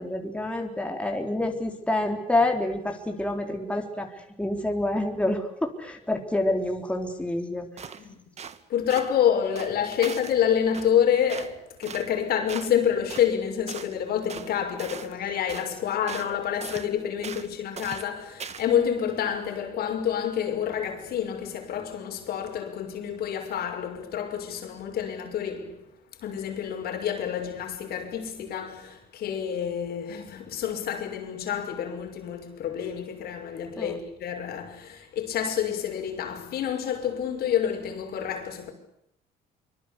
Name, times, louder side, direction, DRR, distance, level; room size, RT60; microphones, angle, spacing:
voice 1, 0.0-7.9 33.8-34.0, left 1 dB, 5° left, 4.0 m, -28 dB
sound 1, 7.8-8.0 8.4-8.6 8.9-9.1 9.6-10.4 10.7-10.9 11.3-11.5 11.8-12.1 12.5-12.8 13.1-13.3 13.7-13.9 14.3-14.5 14.8-15.2 15.5-15.7 16.1-16.3 16.6-16.9 17.2-17.5 17.8-18.1 18.4-18.7, right 7 dB, 40° right, 2.1 m, -39 dB
voice 2, 8.7-25.8 26.2-38.7, left 9 dB, 65° left, 6.1 m, -28 dB
25.0 x 24.5 x 8.3 m
cardioid pair, 110°, 17 cm